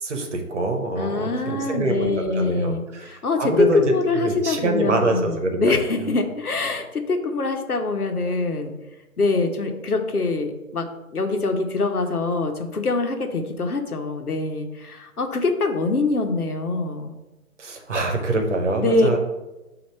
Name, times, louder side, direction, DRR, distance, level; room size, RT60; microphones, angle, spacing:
voice 1, 0.0-5.8 17.6-19.2, right 2 dB, 50° right, 4 dB, 1.2 m, -25 dB
voice 2, 1.0-8.7 9.2-10.9 11.1-17.1 18.8-19.1, left 3 dB, 80° left, 5 dB, 1.1 m, -24 dB
6.2 x 2.9 x 5.5 m, 1.0 s
figure-of-eight pair, 155°, 44 cm